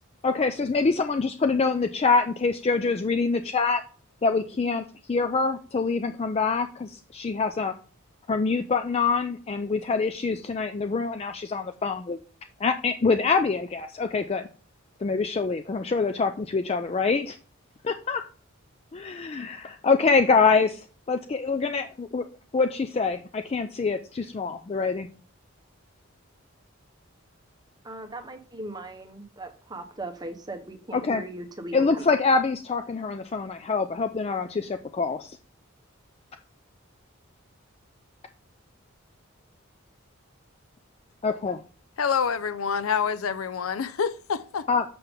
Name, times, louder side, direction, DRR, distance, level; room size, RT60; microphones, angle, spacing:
voice 1, 0.2-3.8 4.2-7.7 8.3-12.2 12.6-14.4 15.0-17.4 17.8-18.2 18.9-22.2 22.5-25.1 30.9-31.2 31.7-35.4 41.2-41.6 44.7-44.8, left 4 dB, 30° left, 0.3 m, -25 dB
voice 2, 27.8-32.0, right 2 dB, 20° right, 0.8 m, -38 dB
voice 3, 42.0-44.7, left 6 dB, 85° left, 0.5 m, -27 dB
6.9 x 5.7 x 3.5 m
head